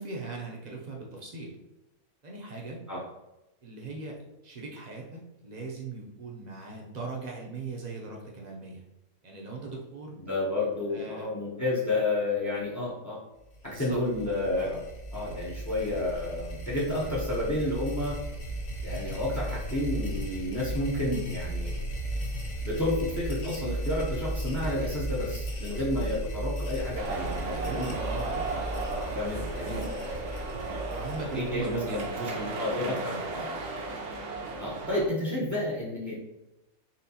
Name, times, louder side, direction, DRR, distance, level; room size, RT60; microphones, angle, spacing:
voice 1, 0.0-1.5 2.2-2.8 3.6-4.2 4.4-8.8 9.2-10.2 10.6-11.3 13.7-14.0 25.6-26.1 27.4-28.4 30.9-33.4, right 3 dB, 45° right, -2 dB, 0.5 m, -39 dB
voice 2, 10.2-13.2 13.6-14.8 15.1-18.2 18.8-21.8 22.6-28.0 28.5-28.6 29.1-29.8 30.7-30.8 31.3-33.5 34.6-36.2, left 2 dB, 25° left, -5 dB, 0.4 m, -31 dB
sound 1, 13.5-32.6, right 1 dB, 55° left, 0.8 m, -36 dB
sound 2, 27.0-35.1, right 3 dB, 80° right, 1.2 m, -35 dB
4.2 x 3.4 x 2.8 m, 0.95 s
omnidirectional pair, 1.6 m